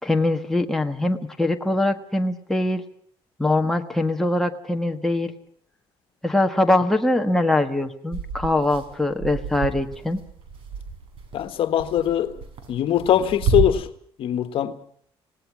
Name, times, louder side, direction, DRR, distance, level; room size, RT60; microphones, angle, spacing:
voice 1, 0.0-2.8 3.4-5.3 6.2-10.2, left 2 dB, 5° left, 1.5 m, -22 dB
sound 1, 8.1-13.6, right 5 dB, 65° right, 5.7 m, -30 dB
voice 2, 11.3-12.3 12.7-13.9 14.2-14.8, left 11 dB, 65° left, 1.6 m, -21 dB
27.5 x 18.0 x 6.2 m
cardioid pair, 145°, 10 cm